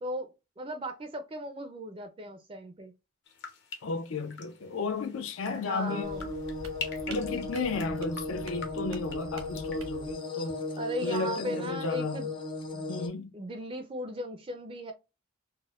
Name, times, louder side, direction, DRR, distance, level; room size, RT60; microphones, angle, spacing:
voice 1, 0.0-2.9 5.5-6.3 10.8-12.3 12.7-12.9 13.3-14.9, equal, 25° right, 0.4 m, -37 dB
sound 1, 3.2-11.2 11.5-12.0, left 5 dB, 60° left, 0.9 m, -46 dB
voice 2, 3.8-6.1 7.1-10.7 11.0-12.3 12.9-13.3, left 3 dB, 75° left, 0.5 m, -33 dB
sound 2, 5.9-13.1, left 2 dB, 25° left, 0.6 m, -36 dB
sound 3, 6.0-10.1, right 2 dB, 80° right, 0.9 m, -46 dB
4.2 x 2.1 x 2.3 m
head